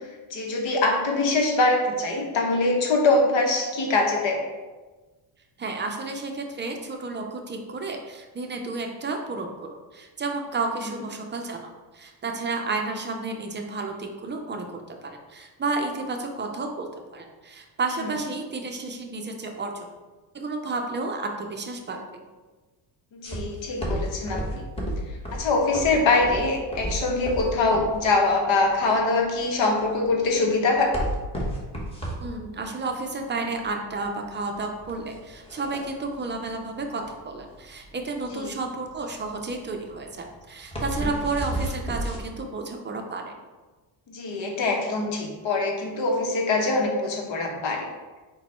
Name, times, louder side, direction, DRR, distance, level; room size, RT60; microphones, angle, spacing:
voice 1, 0.3-4.4 23.1-24.6 25.3-31.0 38.3-38.5 44.1-47.8, left 3 dB, 65° left, 0 dB, 0.9 m, -23 dB
voice 2, 5.6-9.5 9.9-11.6 11.9-16.9 17.1-19.9 20.3-22.2 32.2-43.3, right 3 dB, 25° right, 3 dB, 0.5 m, -31 dB
sound 1, 23.2-42.2, right 1 dB, 10° left, 1.0 m, -33 dB
3.9 x 2.3 x 4.3 m, 1.3 s
cardioid pair, 90°, 50 cm